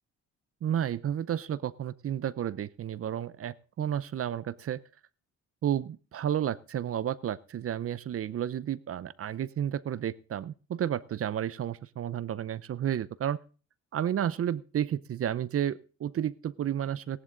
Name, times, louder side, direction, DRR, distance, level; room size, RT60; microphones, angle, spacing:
voice 1, 0.6-4.8 5.6-13.4 13.9-17.2, right 10 dB, 50° right, 19 dB, 0.6 m, -32 dB
17.5 x 11.0 x 3.9 m, 0.37 s
cardioid pair, 90°, 30 cm